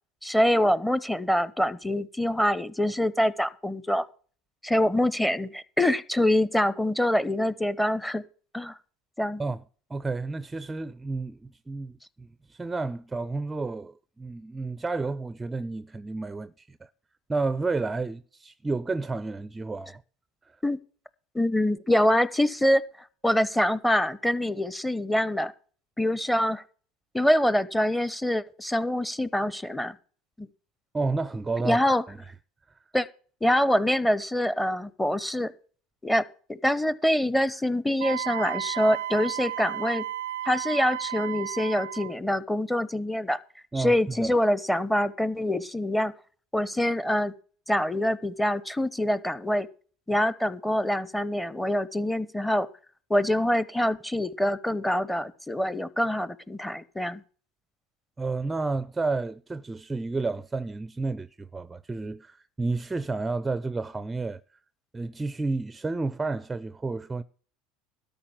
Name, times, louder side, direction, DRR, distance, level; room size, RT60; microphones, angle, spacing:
voice 1, 0.2-4.1 4.6-8.2 8.5-8.7 9.2-9.4 20.6-20.8 21.3-22.8 23.2-25.5 26.0-26.6 27.1-30.0 30.4-30.5 31.6-32.0 32.9-33.1 33.4-35.5 36.0-40.0 40.4-43.4 43.7-46.1 46.5-47.3 47.7-49.7 50.1-52.7 53.1-57.2, left 1 dB, 5° left, 0.9 m, -25 dB
voice 2, 9.9-16.9 17.3-19.9 30.9-31.8 32.1-32.2 32.7-32.8 43.7-44.3 58.2-64.4 64.9-67.2, right 3 dB, 15° right, 0.5 m, -31 dB
Wind instrument woodwind instrument, 38.0-42.1, right 12 dB, 80° right, 0.4 m, -33 dB
13.0 x 5.4 x 7.2 m
hypercardioid pair, 85°, 0 cm